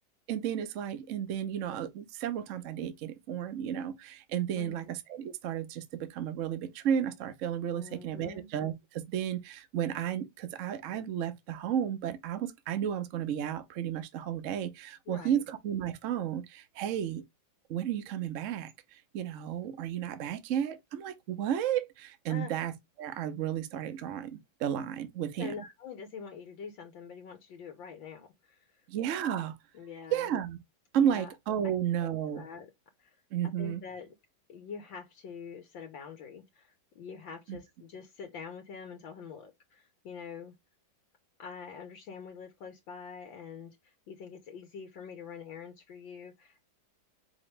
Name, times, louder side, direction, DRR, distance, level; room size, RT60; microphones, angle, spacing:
voice 1, 0.3-17.2 17.7-22.7 23.0-25.5 28.9-29.6 30.1-30.6 30.9-32.4 33.3-33.8 37.5-37.6, right 9 dB, 55° right, 0.9 m, -33 dB
voice 2, 4.5-4.9 7.7-8.5 15.1-15.4 22.3-22.5 25.4-28.8 29.7-30.3 31.0-31.3 31.6-31.7 32.0-32.7 33.0-33.2 33.4-34.1 34.5-40.5 41.4-46.6, left 6 dB, 75° left, 1.6 m, -45 dB
5.1 x 3.0 x 3.2 m
omnidirectional pair, 2.1 m